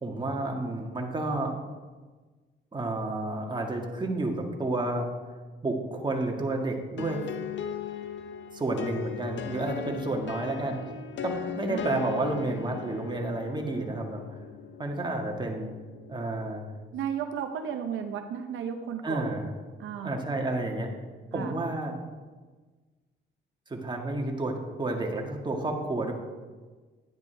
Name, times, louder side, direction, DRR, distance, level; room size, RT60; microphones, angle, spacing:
voice 1, 0.0-1.5 2.7-5.1 5.6-7.2 8.5-10.8 11.2-14.2 14.8-15.7 16.1-16.6 19.0-19.5 20.0-20.9 21.3-22.0 23.7-26.1, right 2 dB, 25° right, 1 dB, 1.8 m, -30 dB
sound 1, 7.0-16.6, left 8 dB, 70° left, 0.8 m, -39 dB
voice 2, 16.9-19.2 19.8-20.2 21.3-21.5, right 8 dB, 80° right, 6 dB, 0.8 m, -34 dB
10.5 x 10.0 x 3.4 m, 1.3 s
cardioid pair, 90°, 20 cm